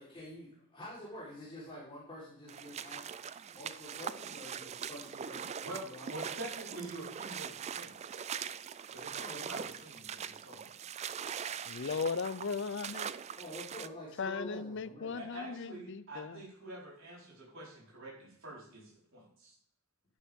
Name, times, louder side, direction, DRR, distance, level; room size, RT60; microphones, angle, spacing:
voice 1, 0.0-3.0 3.5-6.1 9.2-9.8 13.4-15.2, equal, 25° left, 4.0 m, -47 dB
sound 1, 2.5-13.9, right 8 dB, 30° right, 0.3 m, -42 dB
voice 2, 5.6-8.3 8.9-10.7 15.1-19.5, right 1 dB, 60° right, 4.6 m, -46 dB
voice 3, 11.7-13.1 14.2-16.4, left 5 dB, 55° left, 0.5 m, -37 dB
11.5 x 9.9 x 3.6 m
head